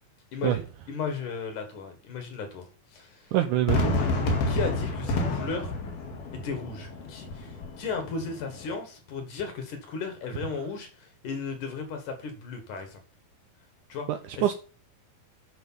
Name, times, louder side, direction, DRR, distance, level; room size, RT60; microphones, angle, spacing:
voice 1, 0.9-2.7 2.9-3.3 4.5-5.7 6.3-13.0 13.9-14.1 14.4-14.5, left 5 dB, 60° left, 2.9 m, -35 dB
voice 2, 3.3-4.0 14.1-14.5, right 12 dB, 85° right, 1.8 m, -25 dB
Fireworks, 3.7-8.7, left 2 dB, 90° left, 4.1 m, -29 dB
9.8 x 5.6 x 5.7 m
omnidirectional pair, 4.2 m